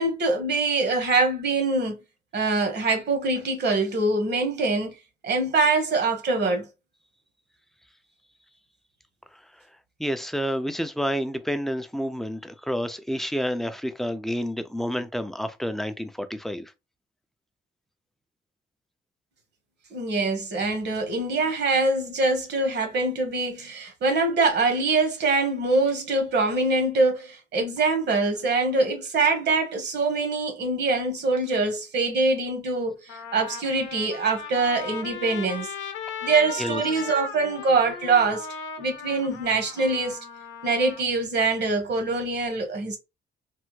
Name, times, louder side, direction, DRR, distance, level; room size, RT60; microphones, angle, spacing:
voice 1, 0.0-2.0 2.3-4.9 5.2-6.7 19.9-35.7 36.2-38.5 38.8-40.2 40.6-43.0, right 3 dB, 60° right, 1.2 m, -24 dB
voice 2, 10.0-16.7 36.2-36.3 36.6-37.0, equal, ahead, 0.4 m, -29 dB
Trumpet, 32.4-32.5 33.1-41.0, left 5 dB, 80° left, 0.6 m, -37 dB
3.4 x 2.1 x 3.0 m
cardioid pair, 90°, 20 cm